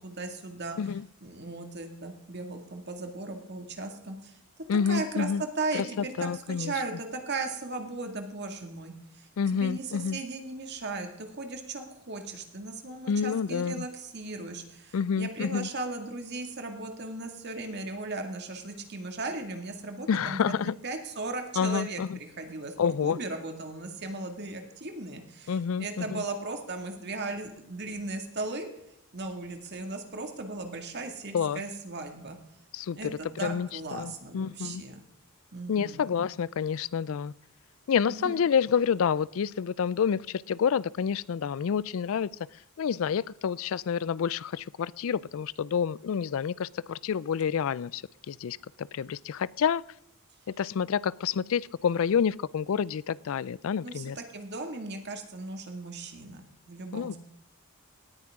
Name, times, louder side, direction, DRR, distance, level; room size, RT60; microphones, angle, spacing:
voice 1, 0.0-0.8 1.2-4.4 4.9-5.3 5.6-20.5 20.8-28.7 29.1-32.4 32.9-35.0 35.5-36.1 38.1-38.4 53.8-57.2, right 3 dB, 50° right, 5 dB, 2.0 m, -37 dB
voice 2, 4.7-5.4 5.7-6.7 9.4-10.2 13.1-13.9 14.9-15.7 20.1-20.7 21.6-22.2 22.8-23.2 25.5-26.2 31.3-31.6 32.7-34.8 35.7-37.3 37.9-42.3 42.8-49.8 50.6-54.2 56.9-57.2, left 7 dB, 65° left, 22 dB, 0.4 m, -28 dB
18.0 x 9.7 x 3.6 m, 0.77 s
head